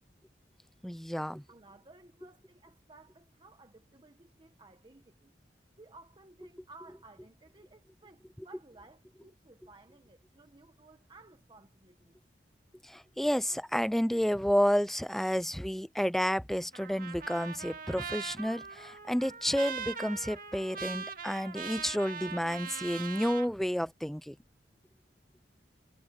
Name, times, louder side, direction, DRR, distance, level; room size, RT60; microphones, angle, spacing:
voice 1, 0.8-1.4 12.8-24.4, equal, ahead, 0.3 m, -30 dB
voice 2, 1.5-5.3 5.8-12.1, right 2 dB, 25° right, 1.3 m, -57 dB
Trumpet, 16.7-23.5, right 6 dB, 50° right, 2.0 m, -41 dB
head